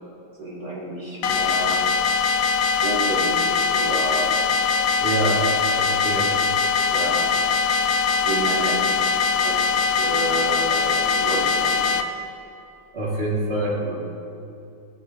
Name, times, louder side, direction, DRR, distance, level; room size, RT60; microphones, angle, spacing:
voice 1, 0.4-1.9 2.8-4.3 6.9-7.2 8.2-9.0 9.4-11.9 13.6-14.2, right 1 dB, 50° right, -6 dB, 3.0 m, -30 dB
sound 1, 1.2-12.0, left 5 dB, 80° left, 1.3 m, -21 dB
voice 2, 5.0-5.5 5.8-6.3 12.9-13.8, right 1 dB, 30° right, -7 dB, 2.3 m, -25 dB
14.5 x 7.7 x 2.7 m, 2.7 s
omnidirectional pair, 2.1 m